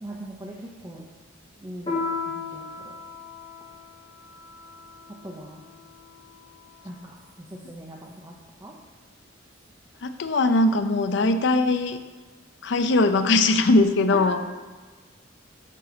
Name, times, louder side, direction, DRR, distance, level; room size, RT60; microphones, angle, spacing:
voice 1, 0.0-1.1 1.6-3.0 5.2-5.6 6.8-8.3 8.6-8.7 14.2-14.3, right 1 dB, 15° right, -2 dB, 0.6 m, -41 dB
Piano, 1.9-6.8, left 4 dB, 30° left, 1.4 m, -36 dB
voice 2, 10.0-12.0 12.6-14.4, left 2 dB, 60° left, 9 dB, 0.5 m, -20 dB
7.6 x 3.9 x 5.0 m, 1.4 s
head